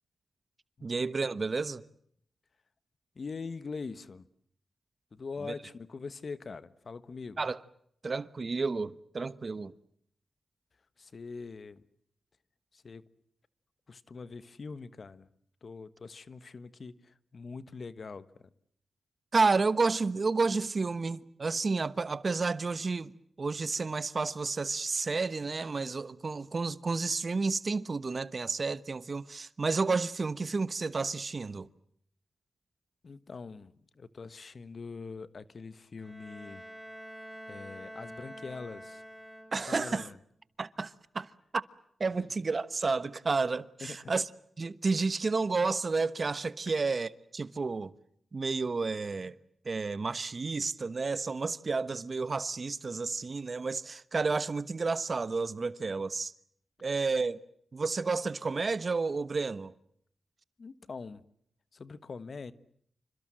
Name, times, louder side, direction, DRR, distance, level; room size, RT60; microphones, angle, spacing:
voice 1, 0.8-1.8 7.4-7.6 8.0-9.7 19.3-31.7 39.5-40.1 40.6-41.6 42.0-44.2 44.6-47.9 48.3-49.3 49.6-56.3 56.8-57.4 57.7-59.7, right 4 dB, 50° right, 1.1 m, -31 dB
voice 2, 3.1-4.2 5.1-7.5 11.0-11.8 12.7-13.0 13.9-15.3 15.6-18.5 33.0-36.6 37.5-39.0 39.7-40.2 42.2-42.3 43.8-44.1 46.7-46.8 60.6-61.2 61.7-62.5, left 4 dB, 60° left, 1.3 m, -43 dB
Bowed string instrument, 36.0-39.9, equal, ahead, 5.7 m, -47 dB
28.0 x 25.5 x 7.7 m
cardioid pair, 50°, 0 cm